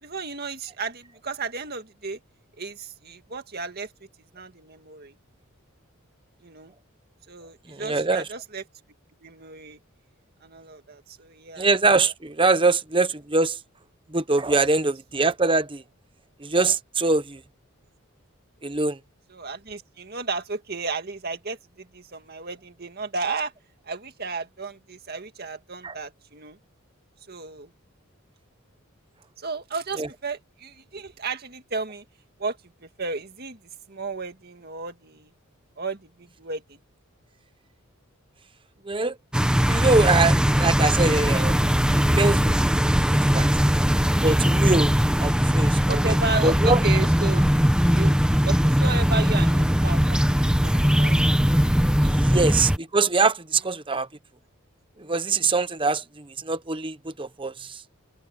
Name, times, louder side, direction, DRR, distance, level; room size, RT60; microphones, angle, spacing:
voice 1, 0.0-2.2 2.6-3.9 4.3-5.2 6.4-6.7 7.3-8.6 9.2-9.8 10.4-11.7 19.3-23.5 23.9-26.6 27.3-27.7 29.4-32.0 32.4-33.6 33.9-35.3 35.8-36.8 45.8-47.5 47.9-48.1 48.4-50.7 51.0-51.2 52.2-52.5, right 3 dB, 45° right, 2.0 m, -33 dB
voice 2, 7.7-8.2 11.6-13.6 14.1-15.8 16.4-17.4 18.6-19.0 25.8-26.0 30.0-30.1 38.8-39.2 39.7-41.5 42.2-42.6 43.1-43.5 44.2-46.1 46.4-46.8 52.0-54.1 55.0-57.8, right 3 dB, 25° right, 1.0 m, -23 dB
sound 1, 39.3-52.8, equal, 5° right, 1.2 m, -20 dB
head